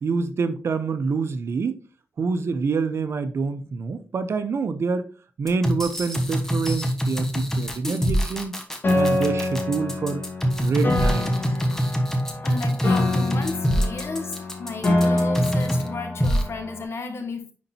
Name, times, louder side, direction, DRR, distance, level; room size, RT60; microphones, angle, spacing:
voice 1, 0.0-1.8 2.2-5.1 5.4-8.6 8.9-10.2 10.6-11.3, right 4 dB, 70° right, 0.7 m, -26 dB
sound 1, 5.5-15.9 16.2-16.4, equal, 10° left, 1.2 m, -24 dB
Piano, 8.8-16.8, left 2 dB, 50° left, 1.6 m, -26 dB
voice 2, 12.4-17.5, left 3 dB, 70° left, 1.3 m, -34 dB
9.8 x 4.0 x 2.8 m
wide cardioid pair, 110°, 5 cm